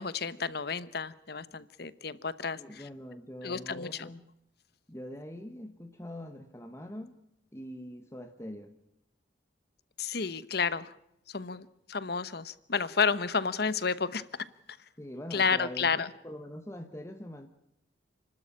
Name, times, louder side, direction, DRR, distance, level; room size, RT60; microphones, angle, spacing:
voice 1, 0.0-2.8 3.4-4.1 10.0-10.9 11.3-14.2 15.3-16.1, left 5 dB, 55° left, 16 dB, 1.0 m, -31 dB
voice 2, 2.6-4.2 4.9-7.1 7.5-8.7 15.0-17.5, left 1 dB, 15° left, 6 dB, 1.2 m, -43 dB
30.0 x 13.0 x 8.7 m, 0.80 s
head